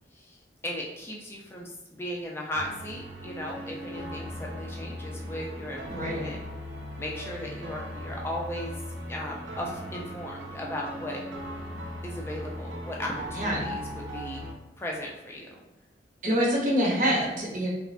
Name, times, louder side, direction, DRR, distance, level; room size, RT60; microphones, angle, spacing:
voice 1, 0.6-6.4 6.9-8.7 9.1-11.2 12.0-14.5 14.8-15.6, left 1 dB, 15° left, -2 dB, 0.4 m, -37 dB
sound 1, 2.5-14.5, equal, 85° right, 0.5 m, -38 dB
voice 2, 5.9-6.3 13.4-13.7 16.2-17.7, equal, 45° right, -4 dB, 0.7 m, -26 dB
3.2 x 2.1 x 2.5 m, 0.92 s
head